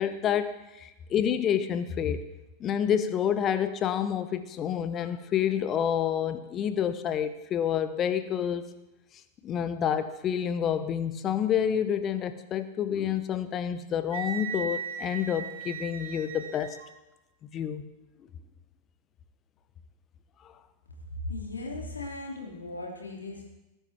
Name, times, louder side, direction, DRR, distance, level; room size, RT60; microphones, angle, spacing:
voice 1, 0.0-2.2 2.6-8.6 9.4-16.8 17.5-17.9, left 9 dB, 30° left, 12 dB, 0.9 m, -28 dB
Wind instrument woodwind instrument, 14.1-16.9, right 6 dB, 65° right, 1.1 m, -37 dB
voice 2, 21.1-23.5, left 2 dB, 75° left, -1 dB, 2.9 m, -37 dB
19.0 x 10.0 x 3.5 m, 1.0 s
figure-of-eight pair, 90°, 0 cm